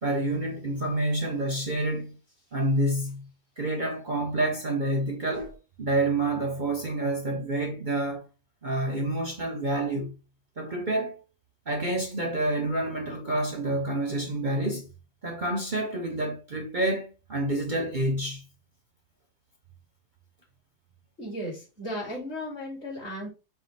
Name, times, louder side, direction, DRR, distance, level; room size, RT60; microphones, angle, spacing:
voice 1, 0.0-2.1 2.5-3.3 3.6-5.5 5.8-8.3 8.6-10.1 10.6-11.2 11.7-14.9 15.2-18.4, right 1 dB, 40° right, 0.8 m, -28 dB
voice 2, 21.2-23.3, equal, 45° left, 2.5 m, -35 dB
4.8 x 2.3 x 4.0 m
omnidirectional pair, 1.6 m